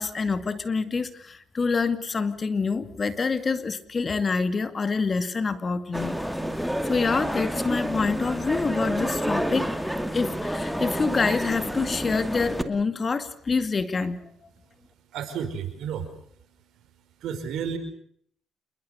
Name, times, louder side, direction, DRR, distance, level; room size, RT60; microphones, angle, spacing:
voice 1, 0.0-6.2 6.6-9.8 10.1-14.2, left 4 dB, 35° left, 11 dB, 2.3 m, -26 dB
sound 1, 5.9-12.6, equal, ahead, 2.5 m, -29 dB
voice 2, 15.1-16.1 17.2-17.8, right 7 dB, 80° right, 8 dB, 5.4 m, -31 dB
28.0 x 22.0 x 6.9 m, 0.64 s
cardioid pair, 90°, 0 cm